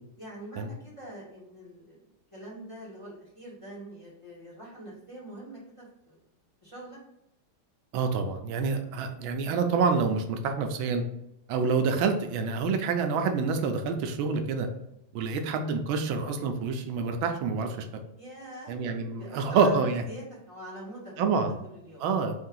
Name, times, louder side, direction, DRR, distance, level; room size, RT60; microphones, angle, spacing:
voice 1, 0.2-2.1 2.3-6.2 6.6-7.0 18.2-18.8 19.1-21.1 21.7-22.1, right 1 dB, 20° left, -7 dB, 1.4 m, -44 dB
voice 2, 7.9-11.0 11.5-14.7 15.1-18.0 18.7-20.0 21.2-21.6 22.0-22.3, right 5 dB, 85° right, 6 dB, 1.4 m, -27 dB
4.2 x 2.7 x 3.8 m, 0.82 s
omnidirectional pair, 2.1 m